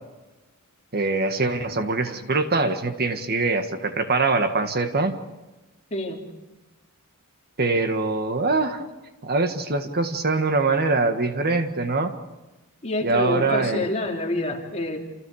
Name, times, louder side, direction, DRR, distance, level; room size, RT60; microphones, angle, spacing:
voice 1, 0.9-5.2 7.6-8.9 9.2-12.1 13.0-13.9, right 3 dB, 45° right, 7 dB, 1.8 m, -23 dB
voice 2, 5.9-6.2 12.8-15.0, left 2 dB, 30° left, 0 dB, 3.5 m, -27 dB
28.5 x 28.0 x 5.0 m, 1.1 s
head